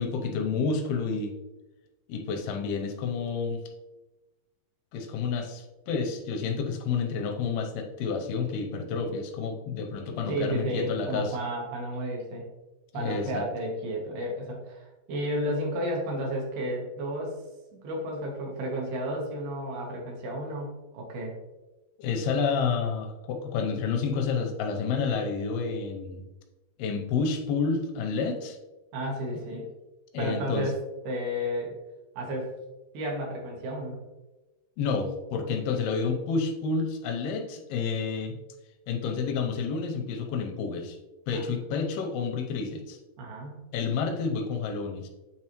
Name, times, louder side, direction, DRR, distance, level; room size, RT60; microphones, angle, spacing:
voice 1, 0.0-1.3 2.1-3.6 4.9-11.4 12.9-13.4 22.0-26.2 26.8-28.6 30.1-30.7 34.8-38.3 38.9-41.0 41.3-43.0 43.7-45.1, left 5 dB, 85° left, 4 dB, 2.5 m, -29 dB
voice 2, 10.2-12.4 12.9-17.4 17.8-21.3 28.9-29.7 30.2-30.7 31.0-31.8 32.2-32.5 32.9-34.0 41.3-41.4 43.2-43.7, equal, 75° right, 0 dB, 3.0 m, -32 dB
8.8 x 3.8 x 3.0 m, 1.1 s
omnidirectional pair, 4.7 m